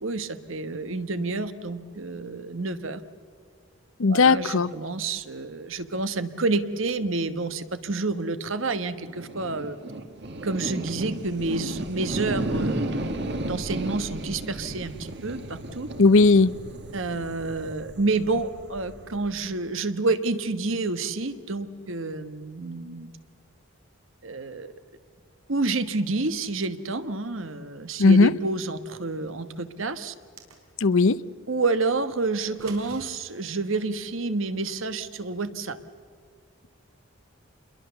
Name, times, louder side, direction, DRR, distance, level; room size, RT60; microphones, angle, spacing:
voice 1, 0.0-3.0 4.1-9.8 10.4-15.9 16.9-23.1 24.2-24.7 25.5-30.1 31.5-35.8, right 3 dB, 70° right, 11 dB, 1.3 m, -29 dB
voice 2, 4.0-4.7 16.0-16.5 28.0-28.3 30.8-31.2, left 3 dB, 70° left, 17 dB, 0.6 m, -17 dB
sound 1, 9.1-19.5, right 1 dB, 50° right, 1.7 m, -34 dB
sound 2, 30.1-31.0 32.4-33.1, right 4 dB, 90° right, 3.8 m, -45 dB
28.0 x 22.0 x 6.9 m, 2.1 s
head